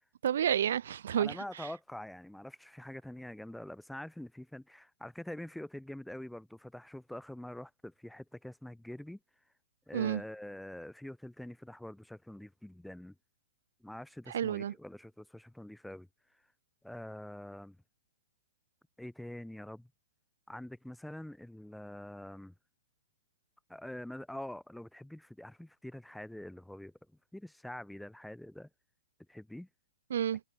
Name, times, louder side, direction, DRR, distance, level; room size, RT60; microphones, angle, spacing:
voice 1, 0.2-1.7 9.9-10.2 14.3-14.7 30.1-30.4, right 9 dB, 70° right, 1.5 m, -30 dB
voice 2, 1.1-9.2 9.9-13.1 13.8-16.1 16.8-17.8 19.0-19.9 20.5-22.5 23.7-26.9 27.3-28.7 29.3-29.7, left 1 dB, ahead, 1.0 m, -45 dB
hypercardioid pair, 130°, 0 cm